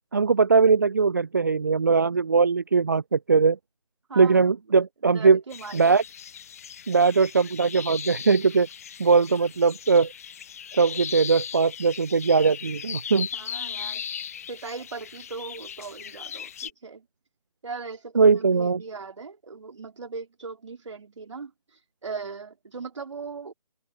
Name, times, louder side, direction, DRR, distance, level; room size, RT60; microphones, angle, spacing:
voice 1, 0.1-3.6 4.2-5.4 5.7-6.0 6.9-8.7 9.0-10.1 10.7-13.3 18.1-18.8, right 5 dB, 30° right, 0.7 m, -20 dB
voice 2, 4.1-4.4 5.0-5.9 13.3-14.0 14.5-17.0 17.6-21.5 22.0-23.5, right 4 dB, 45° right, 3.4 m, -39 dB
sound 1, 5.5-16.7, left 8 dB, 20° left, 1.2 m, -38 dB
figure-of-eight pair, 150°, 21 cm